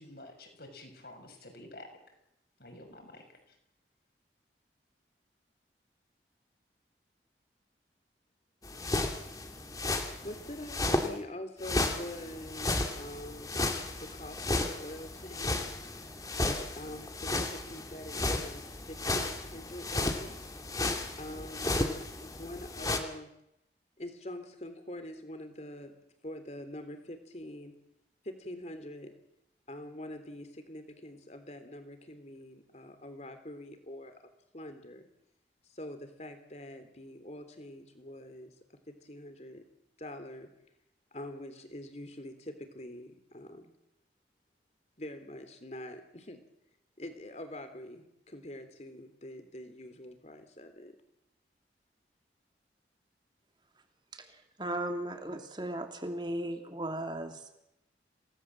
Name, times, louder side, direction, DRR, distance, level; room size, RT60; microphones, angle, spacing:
voice 1, 0.0-1.9 2.6-3.2, left 1 dB, 60° left, 3 dB, 6.7 m, -49 dB
sound 1, 8.6-11.1 11.6-23.0, left 2 dB, 20° left, 2.4 m, -34 dB
voice 2, 10.2-15.8 16.8-20.4 21.2-23.3 24.0-26.0 26.2-27.7 28.2-29.1 29.7-34.2 34.5-35.1 35.6-38.5 38.9-39.6 40.0-40.5 41.1-43.7 45.0-46.4 47.0-51.0, left 1 dB, 40° left, 8 dB, 3.4 m, -45 dB
voice 3, 54.1-57.5, right 1 dB, 25° right, 5 dB, 2.8 m, -37 dB
27.5 x 19.0 x 7.7 m, 0.82 s
head